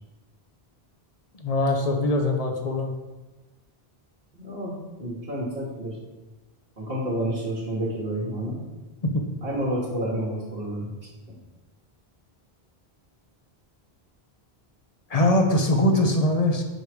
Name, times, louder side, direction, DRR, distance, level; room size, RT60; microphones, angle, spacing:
voice 1, 1.4-2.9 9.0-9.2 15.1-16.6, left 1 dB, 40° left, 3 dB, 0.8 m, -22 dB
voice 2, 4.3-6.0 6.8-8.6 9.4-10.9, right 1 dB, 65° right, -5 dB, 1.6 m, -29 dB
5.2 x 4.7 x 5.0 m, 1.1 s
omnidirectional pair, 1.1 m